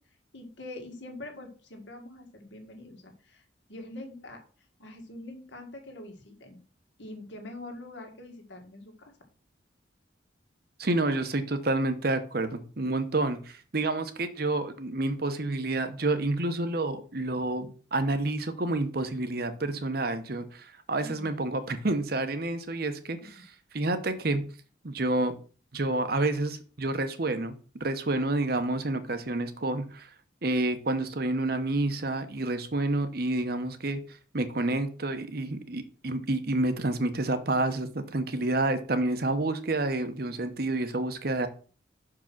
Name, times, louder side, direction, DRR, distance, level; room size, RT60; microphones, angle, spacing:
voice 1, 0.3-3.4 3.7-4.4 4.8-6.6 7.0-9.1 21.0-21.3, left 1 dB, 75° left, 3 dB, 1.8 m, -44 dB
voice 2, 10.8-23.2 23.7-24.4 24.8-25.3 25.7-27.5 27.8-30.1 30.4-34.0 34.3-41.5, right 2 dB, 55° right, 10 dB, 0.9 m, -29 dB
6.1 x 4.9 x 5.9 m, 0.39 s
head